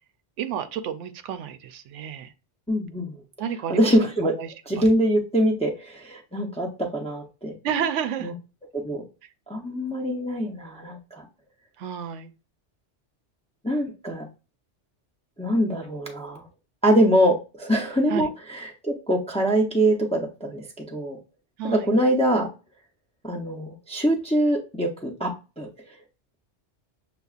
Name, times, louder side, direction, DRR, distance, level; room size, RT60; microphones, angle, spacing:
voice 1, 0.4-2.3 3.4-4.0 4.4-4.9 7.6-8.3 11.8-12.3 18.1-18.3 21.6-21.9, right 8 dB, 90° right, 10 dB, 0.9 m, -30 dB
voice 2, 2.7-3.2 3.7-4.3 4.7-6.7 6.9-7.5 8.2-8.3 8.7-9.0 9.5-11.2 13.6-14.2 15.4-16.4 16.8-21.2 21.6-22.5 23.2-25.3 25.6-25.7, equal, 10° left, 0 dB, 0.5 m, -23 dB
6.7 x 2.3 x 2.4 m, 0.30 s
omnidirectional pair, 1.2 m